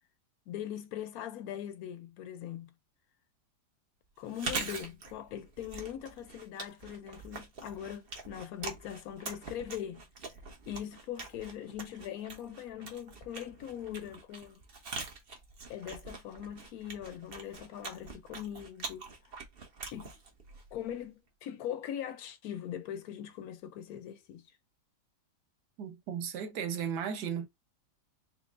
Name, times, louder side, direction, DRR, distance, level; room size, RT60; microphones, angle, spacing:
voice 1, 0.5-2.7 4.2-10.1 10.7-14.6 15.7-19.1 19.9-20.1 20.7-24.5, left 10 dB, 70° left, 1.0 m, -41 dB
Chewing mastication, 4.2-21.1, right 3 dB, 45° right, 0.9 m, -44 dB
voice 2, 25.8-27.5, right 7 dB, 90° right, 1.4 m, -35 dB
4.5 x 2.0 x 3.6 m
omnidirectional pair, 1.8 m